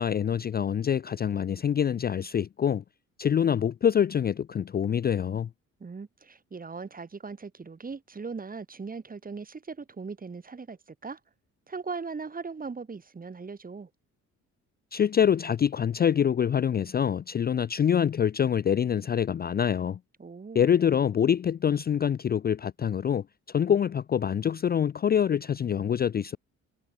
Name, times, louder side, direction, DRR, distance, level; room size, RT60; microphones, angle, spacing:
voice 1, 0.0-2.8 3.2-5.5 14.9-20.0 20.5-26.4, left 8 dB, 30° left, 0.4 m, -25 dB
voice 2, 5.8-11.2 11.7-13.9 20.2-20.7, right 4 dB, 30° right, 2.6 m, -39 dB
cardioid pair, 90°, 30 cm